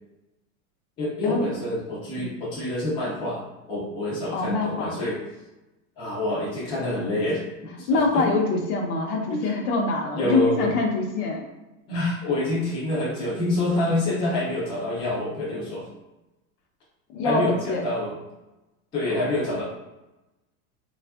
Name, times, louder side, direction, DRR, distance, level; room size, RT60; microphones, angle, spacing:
voice 1, 1.0-5.2 6.0-8.3 9.3-9.5 10.1-10.7 11.9-15.9 17.2-18.2 18.9-19.6, left 1 dB, 15° left, -6 dB, 0.3 m, -27 dB
voice 2, 4.3-4.9 7.9-11.4 17.1-17.8, left 3 dB, 80° left, 1 dB, 0.8 m, -24 dB
2.5 x 2.4 x 2.3 m, 1.0 s
supercardioid pair, 135°, 44 cm